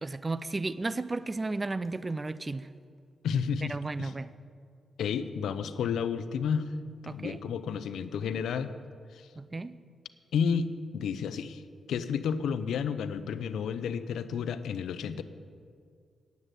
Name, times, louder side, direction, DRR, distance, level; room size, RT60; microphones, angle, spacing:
voice 1, 0.0-2.7 3.7-4.3 7.1-7.4 9.4-9.8, right 3 dB, 30° right, 15 dB, 0.4 m, -34 dB
voice 2, 3.2-4.1 5.0-8.7 9.1-9.3 10.3-11.6 11.9-15.2, left 6 dB, 85° left, 13 dB, 0.5 m, -31 dB
9.5 x 8.2 x 9.0 m, 2.2 s
cardioid pair, 70°, 0 cm